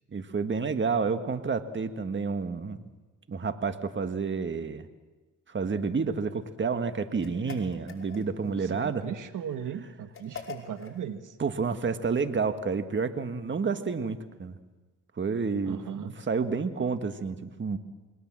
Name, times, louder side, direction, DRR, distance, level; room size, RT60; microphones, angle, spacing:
voice 1, 0.1-2.8 3.3-4.8 5.5-9.0 11.4-14.6 15.2-17.8, right 5 dB, 35° right, 9 dB, 1.6 m, -30 dB
sound 1, 7.2-8.5 10.1-11.0, left 5 dB, 35° left, 5.1 m, -43 dB
voice 2, 8.4-11.4 15.6-16.1, right 8 dB, 60° right, 9 dB, 1.7 m, -38 dB
28.0 x 22.0 x 7.6 m, 1.2 s
cardioid pair, 75°, 34 cm